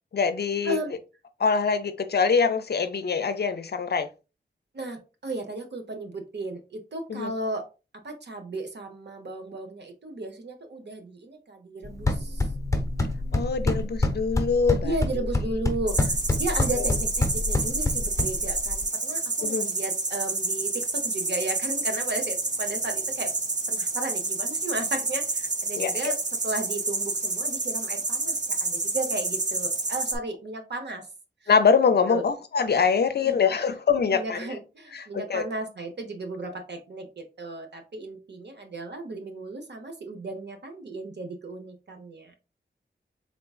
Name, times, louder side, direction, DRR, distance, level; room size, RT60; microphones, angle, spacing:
voice 1, 0.1-0.8 1.4-4.1 7.1-7.3 13.3-14.9 16.8-16.9 19.4-19.7 25.8-26.1 31.5-34.4 34.9-35.4, left 5 dB, 60° left, 0.5 m, -24 dB
voice 2, 4.7-7.7 8.0-12.5 14.8-23.3 23.7-26.2 26.4-31.1 31.4-31.5 32.1-32.2 33.2-33.4 34.1-42.4, right 2 dB, 65° right, 0.9 m, -34 dB
sound 1, 11.8-18.8, left 2 dB, 15° left, 0.9 m, -27 dB
sound 2, 15.9-30.2, right 3 dB, 40° right, 0.7 m, -29 dB
3.7 x 3.6 x 2.4 m
wide cardioid pair, 70°, 19 cm